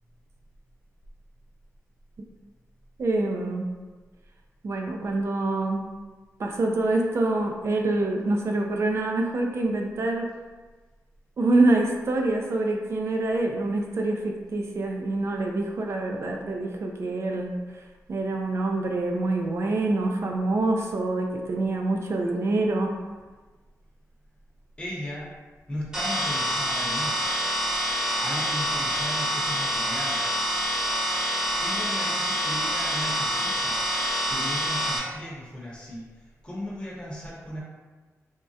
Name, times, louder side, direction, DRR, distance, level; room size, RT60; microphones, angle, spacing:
voice 1, 3.0-3.7 4.6-5.9 6.4-10.3 11.4-17.5 18.1-22.9, right 2 dB, 50° right, 1 dB, 0.4 m, -26 dB
voice 2, 24.8-25.3 25.7-27.2 28.2-30.4 31.6-33.8 34.3-37.6, equal, 20° left, -6 dB, 0.8 m, -36 dB
sound 1, 25.9-35.0, equal, 10° right, 0.8 m, -26 dB
3.5 x 2.1 x 2.6 m, 1.3 s
wide cardioid pair, 130°, 6 cm